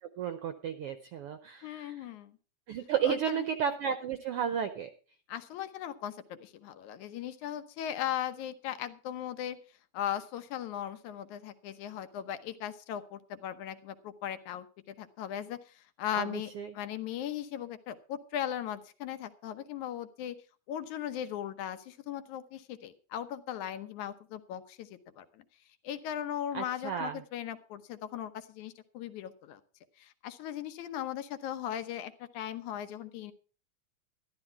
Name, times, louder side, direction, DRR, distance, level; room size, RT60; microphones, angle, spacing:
voice 1, 0.0-2.0 2.7-4.9 16.1-16.7 26.5-27.2, right 8 dB, 75° right, 10 dB, 1.3 m, -33 dB
voice 2, 1.6-2.4 3.0-3.5 5.3-9.6 9.9-20.4 20.7-25.4 25.8-29.6 30.0-33.3, left 10 dB, 80° left, 11 dB, 2.4 m, -38 dB
13.0 x 12.5 x 4.6 m, 0.37 s
omnidirectional pair, 3.4 m